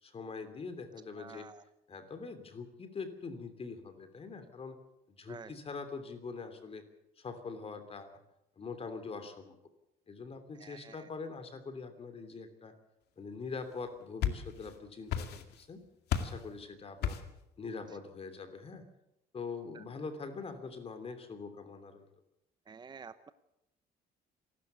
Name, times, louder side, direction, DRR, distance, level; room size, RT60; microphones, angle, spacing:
voice 1, 0.0-1.5 1.9-4.8 5.1-6.8 7.2-8.2 8.6-9.6 10.1-12.7 13.2-15.9 16.2-17.2 17.6-18.8 19.3-22.1, left 4 dB, 35° left, 9 dB, 3.0 m, -43 dB
voice 2, 1.2-1.6 5.3-5.5 10.6-11.1 19.7-19.8 22.7-23.3, right 5 dB, 25° right, 12 dB, 0.9 m, -49 dB
sound 1, 13.8-14.8 15.1-15.7 16.1-16.5 17.0-17.4, left 9 dB, 75° left, 2.3 m, -34 dB
27.0 x 12.5 x 8.2 m, 0.87 s
cardioid pair, 110°, 17 cm